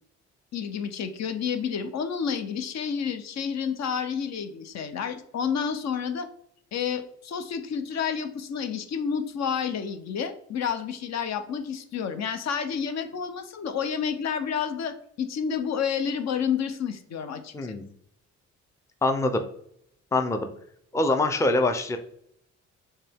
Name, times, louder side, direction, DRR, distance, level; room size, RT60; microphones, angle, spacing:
voice 1, 0.5-6.3 6.7-17.7, left 7 dB, 60° left, 9 dB, 0.7 m, -30 dB
voice 2, 17.5-17.9 19.0-19.4 20.1-20.5 20.9-22.0, left 2 dB, 10° left, 6 dB, 0.5 m, -24 dB
6.5 x 2.3 x 3.4 m, 0.70 s
cardioid pair, 90°, 30 cm